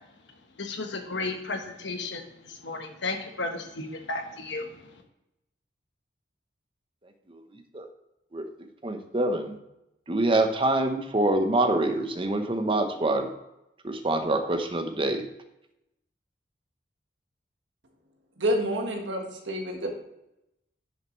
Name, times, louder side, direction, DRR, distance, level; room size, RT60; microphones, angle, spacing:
voice 1, 0.6-2.2 2.6-4.7, left 3 dB, 75° left, 4 dB, 1.2 m, -33 dB
voice 2, 7.3-7.9 8.3-8.4 8.8-9.6 10.1-13.3 13.8-15.3, right 2 dB, 30° right, 6 dB, 0.9 m, -26 dB
voice 3, 18.4-19.9, equal, 85° right, 3 dB, 1.6 m, -28 dB
10.5 x 6.6 x 3.1 m, 0.87 s
head